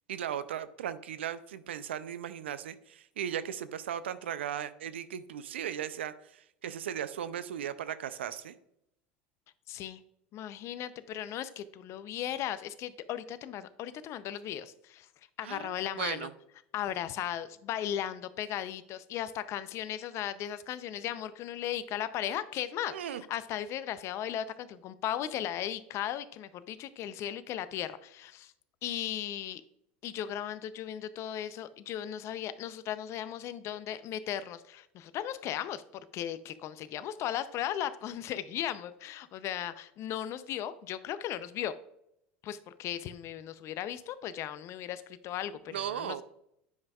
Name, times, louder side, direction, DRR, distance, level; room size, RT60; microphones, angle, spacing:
voice 1, 0.1-8.5 15.4-16.3 22.9-23.2 45.7-46.2, right 9 dB, 90° right, 14 dB, 0.4 m, -37 dB
voice 2, 9.7-10.0 10.3-15.1 15.4-16.3 16.7-28.5 28.8-29.6 30.0-35.8 36.1-41.7 42.4-46.2, left 11 dB, 50° left, 14 dB, 0.5 m, -36 dB
9.5 x 5.2 x 2.3 m, 0.76 s
hypercardioid pair, 90°, 6 cm